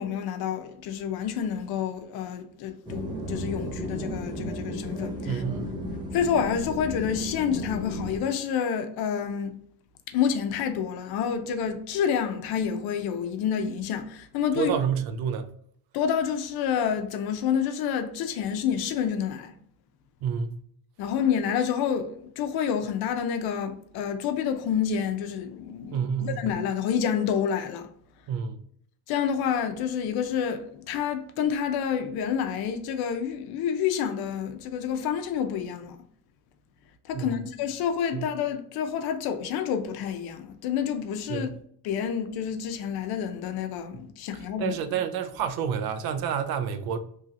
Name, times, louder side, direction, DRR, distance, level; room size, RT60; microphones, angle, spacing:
voice 1, 0.0-5.4 6.1-9.6 10.1-14.7 15.9-19.5 21.0-27.9 29.1-36.0 37.1-41.5 41.8-44.8, left 8 dB, 85° left, 0.6 m, -28 dB
sound 1, 2.9-8.2, left 1 dB, 10° right, 0.6 m, -34 dB
voice 2, 5.3-5.8 14.5-15.5 20.2-20.6 25.9-26.5 28.3-28.6 37.1-37.4 38.1-38.3 41.3-41.5 44.6-47.0, right 7 dB, 75° right, 0.5 m, -29 dB
3.1 x 2.7 x 2.4 m
cardioid pair, 130°, 37 cm